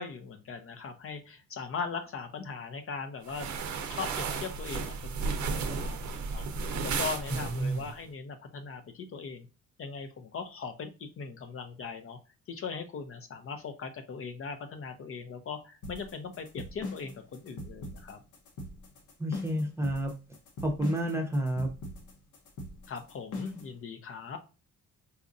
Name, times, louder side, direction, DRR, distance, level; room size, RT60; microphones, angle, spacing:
voice 1, 0.0-9.5 9.8-12.2 12.5-18.2 22.9-24.4, left 5 dB, 45° left, 7 dB, 0.6 m, -40 dB
sound 1, 3.3-7.9, right 4 dB, 70° right, 0.6 m, -34 dB
voice 2, 7.3-7.9 19.2-20.2 20.6-21.7, right 1 dB, 10° right, 3 dB, 0.7 m, -30 dB
sound 2, 15.8-23.7, left 2 dB, 75° left, 0.9 m, -41 dB
4.1 x 2.4 x 2.5 m, 0.31 s
cardioid pair, 90°, 30 cm